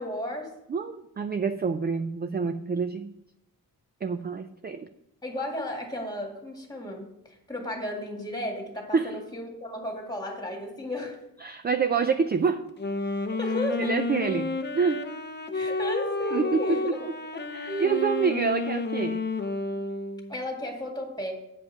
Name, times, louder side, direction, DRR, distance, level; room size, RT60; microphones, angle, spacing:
voice 1, 0.0-0.5 5.2-11.2 13.4-14.0 15.5-17.0 17.3-18.3 20.3-21.3, equal, 10° left, 1 dB, 2.0 m, -34 dB
voice 2, 0.7-3.1 4.0-4.9 8.9-9.2 11.4-12.7 13.8-15.0 16.3-16.6 17.5-19.2, right 5 dB, 30° right, 9 dB, 0.4 m, -27 dB
Wind instrument woodwind instrument, 12.7-20.4, left 3 dB, 30° left, 0.6 m, -31 dB
8.9 x 5.3 x 5.8 m, 0.83 s
wide cardioid pair, 120°, 36 cm